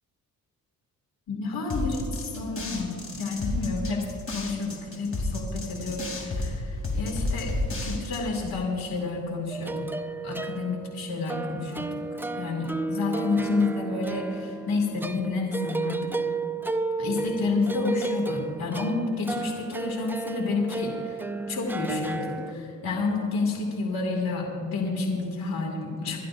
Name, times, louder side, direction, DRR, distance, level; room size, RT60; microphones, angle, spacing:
voice 1, 1.3-4.0 4.3-7.5 7.8-9.9 10.2-11.9 12.4-16.2 17.0-26.2, left 3 dB, 80° left, 0 dB, 2.4 m, -30 dB
sound 1, 1.7-8.5, left 2 dB, 40° left, 3.0 m, -31 dB
sound 2, 9.5-22.5, right 3 dB, 5° right, 0.4 m, -33 dB
27.0 x 12.0 x 2.6 m, 2.7 s
cardioid pair, 100°, 35 cm